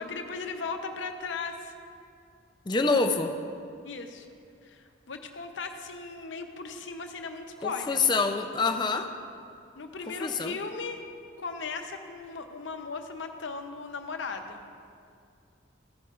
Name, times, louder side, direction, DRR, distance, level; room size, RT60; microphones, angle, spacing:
voice 1, 0.0-1.7 3.8-4.3 4.6-8.1 9.8-11.0 11.4-14.6, left 4 dB, 75° left, 6 dB, 0.7 m, -37 dB
voice 2, 2.7-3.3 7.6-9.1 10.2-10.6, left 4 dB, 25° left, 5 dB, 0.5 m, -26 dB
15.0 x 9.1 x 2.5 m, 2.4 s
head